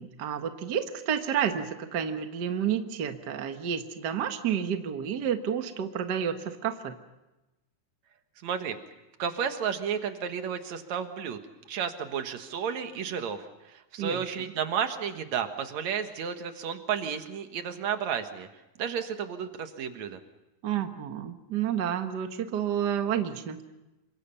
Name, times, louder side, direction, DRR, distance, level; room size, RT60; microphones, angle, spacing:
voice 1, 0.0-6.9 14.0-14.2 20.6-23.6, right 8 dB, 90° right, 7 dB, 0.9 m, -30 dB
voice 2, 8.4-8.8 9.2-11.4 11.7-18.5 18.8-20.2, right 7 dB, 60° right, 7 dB, 2.4 m, -32 dB
28.0 x 24.5 x 5.6 m, 1.0 s
omnidirectional pair, 4.2 m